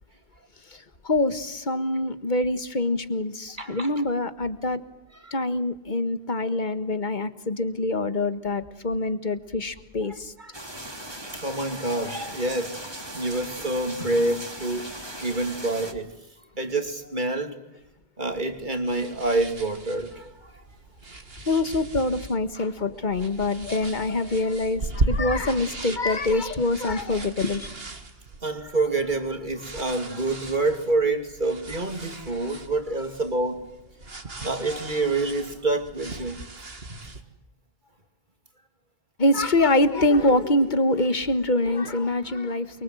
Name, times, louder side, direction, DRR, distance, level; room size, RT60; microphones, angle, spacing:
voice 1, 0.7-4.8 5.3-10.3 21.4-27.7 39.2-42.8, left 2 dB, 50° left, 1.7 m, -25 dB
voice 2, 3.6-3.9 5.2-5.3 10.4-10.8 11.3-12.8 13.1-14.9 15.2-16.1 16.6-17.6 18.2-20.6 28.4-33.6 34.0-36.5 36.9-37.0, right 2 dB, 50° right, 3.0 m, -27 dB
sound 1, 10.5-15.9, right 1 dB, 25° right, 2.9 m, -38 dB
sound 2, 18.3-37.2, right 2 dB, 70° right, 2.4 m, -37 dB
28.5 x 24.0 x 7.8 m
omnidirectional pair, 1.0 m